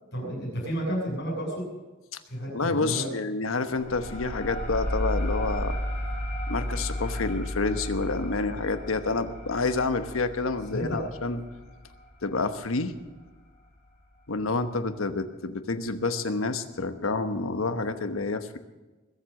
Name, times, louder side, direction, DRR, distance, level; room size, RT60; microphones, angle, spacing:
voice 1, 0.0-1.7 2.3-3.1 10.7-11.0, right 1 dB, 55° left, -2 dB, 7.4 m, -31 dB
voice 2, 2.5-5.8 6.5-11.4 12.2-12.9 14.3-18.6, left 3 dB, 85° left, 10 dB, 1.1 m, -28 dB
sound 1, 3.8-13.0, left 1 dB, 40° left, 5.5 m, -33 dB
21.5 x 7.9 x 7.5 m, 1.2 s
head